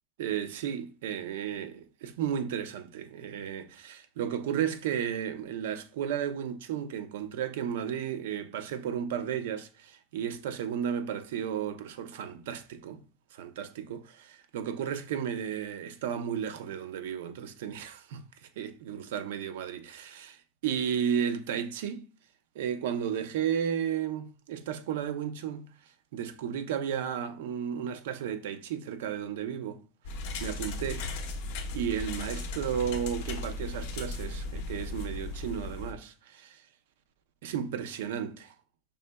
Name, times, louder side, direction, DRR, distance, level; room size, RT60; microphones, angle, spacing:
voice 1, 0.2-13.0 13.3-18.2 18.6-22.1 22.5-25.7 26.1-29.8 30.4-31.1 31.7-36.6 37.4-38.5, right 8 dB, 85° right, 0.6 m, -33 dB
sound 1, 30.0-35.9, left 2 dB, 60° left, 0.8 m, -36 dB
5.4 x 3.7 x 2.2 m
supercardioid pair, 175°, 0 cm